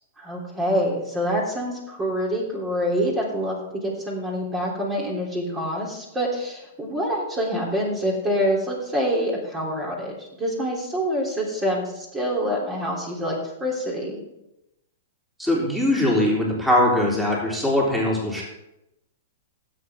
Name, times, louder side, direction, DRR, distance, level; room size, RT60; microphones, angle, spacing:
voice 1, 0.2-14.2, equal, 20° right, -2 dB, 3.4 m, -26 dB
voice 2, 15.4-18.4, left 1 dB, 5° right, -4 dB, 3.4 m, -21 dB
16.0 x 7.9 x 3.7 m, 0.88 s
hypercardioid pair, 120°, 0 cm